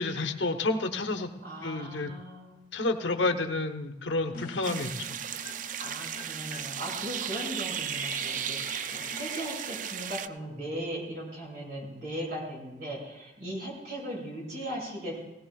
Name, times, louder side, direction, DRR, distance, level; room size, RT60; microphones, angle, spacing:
voice 1, 0.0-1.3 1.6-2.1 2.7-5.2, left 2 dB, 80° left, 6 dB, 1.0 m, -30 dB
voice 2, 1.4-2.6 5.8-15.2, equal, 65° right, -3 dB, 5.8 m, -38 dB
sound 1, 4.3-9.8, left 3 dB, 50° left, 0.8 m, -46 dB
sound 2, 4.6-10.3, right 9 dB, 45° right, 0.4 m, -35 dB
18.5 x 17.5 x 2.3 m, 0.95 s
head